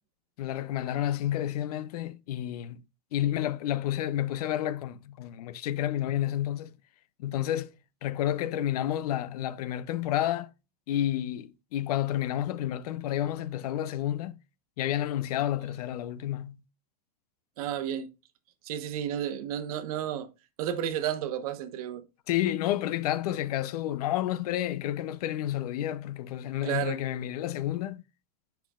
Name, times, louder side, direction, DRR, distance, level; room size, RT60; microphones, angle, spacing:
voice 1, 0.4-2.8 3.1-6.7 7.2-7.7 8.0-10.5 10.9-14.4 14.8-16.6 22.3-28.0, left 12 dB, 65° left, 0.6 m, -30 dB
voice 2, 17.6-18.1 18.6-20.3 20.6-22.0 26.6-27.0, right 10 dB, 60° right, 1.1 m, -32 dB
8.3 x 5.8 x 2.4 m
supercardioid pair, 165°, 21 cm